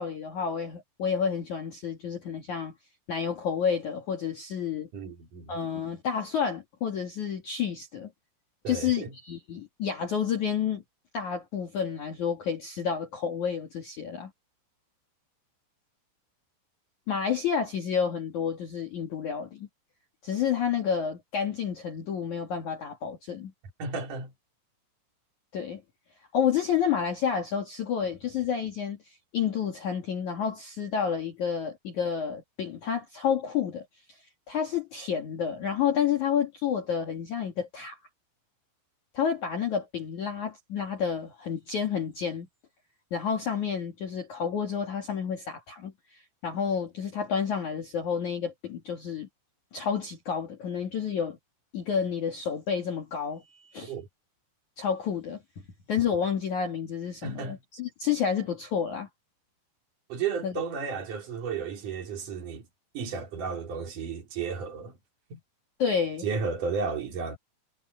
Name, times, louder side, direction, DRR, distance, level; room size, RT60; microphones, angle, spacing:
voice 1, 0.0-2.7 3.1-4.9 5.5-8.1 8.7-10.8 11.1-14.3 17.1-19.7 20.2-23.5 25.5-25.8 26.3-34.2 34.5-38.0 39.1-42.5 43.1-49.3 49.7-51.4 51.7-53.9 54.8-55.4 55.9-59.1 60.4-60.6 65.8-66.3, left 7 dB, 50° left, 2.6 m, -30 dB
voice 2, 4.9-5.5 8.6-9.1 23.8-24.3 53.9-54.1 57.2-57.6 60.1-62.6 62.9-64.9 65.3-65.4 66.2-67.4, right 5 dB, 45° right, 5.0 m, -33 dB
omnidirectional pair, 5.6 m